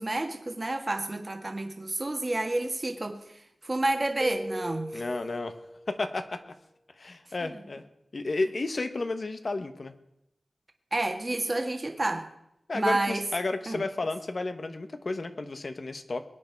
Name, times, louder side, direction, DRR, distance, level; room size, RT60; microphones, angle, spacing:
voice 1, 0.0-5.0 7.4-7.5 10.9-12.3 12.7-13.2 13.7-13.8, right 2 dB, 35° right, 5 dB, 1.6 m, -30 dB
Keyboard (musical), 4.2-6.2, equal, 15° left, 1.3 m, -38 dB
voice 2, 4.9-5.6 5.9-6.4 7.0-7.8 8.1-9.9 12.7-16.2, left 3 dB, 55° left, 8 dB, 1.2 m, -32 dB
21.5 x 9.5 x 4.6 m, 0.80 s
wide cardioid pair, 95°, 0 cm